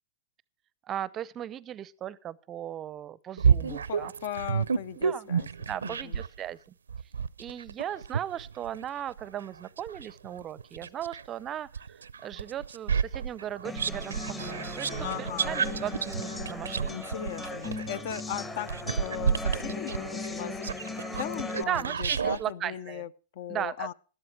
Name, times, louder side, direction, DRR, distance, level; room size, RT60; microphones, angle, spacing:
voice 1, 0.9-4.1 5.0-5.3 5.7-6.6 7.4-17.0 21.7-23.0 23.5-23.9, right 11 dB, 25° right, 0.5 m, -37 dB
sound 1, 3.4-6.4 6.9-11.3 11.7-22.4, right 6 dB, 85° right, 0.5 m, -30 dB
voice 2, 3.6-6.2 15.0-15.6 16.9-20.8 21.2-23.9, left 11 dB, 55° left, 0.5 m, -38 dB
sound 2, 13.6-21.6, left 3 dB, 15° left, 0.8 m, -38 dB
12.5 x 12.0 x 4.6 m
hypercardioid pair, 120°, 0 cm